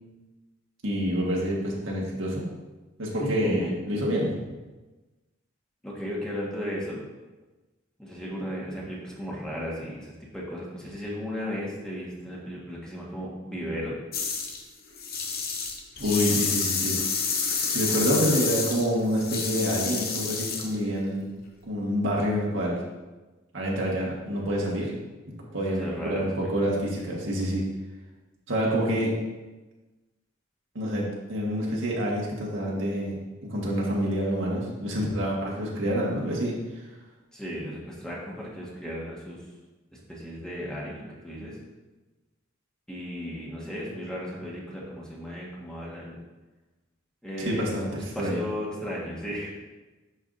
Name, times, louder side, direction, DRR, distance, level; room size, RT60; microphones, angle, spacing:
voice 1, 0.8-2.5 3.0-4.3 16.0-16.9 17.7-21.3 21.6-22.8 23.5-24.9 25.5-27.6 28.5-29.1 30.7-33.2 33.5-36.5 47.4-47.9 48.2-48.4, equal, 75° right, -3 dB, 1.6 m, -27 dB
voice 2, 3.2-3.7 5.8-7.0 8.0-13.9 25.6-26.7 37.3-39.4 39.9-41.6 42.9-46.2 47.2-49.5, equal, 5° left, -5 dB, 1.5 m, -35 dB
sound 1, 14.1-14.6 15.0-20.8, left 5 dB, 50° left, 0.9 m, -29 dB
11.0 x 4.7 x 2.7 m, 1.2 s
head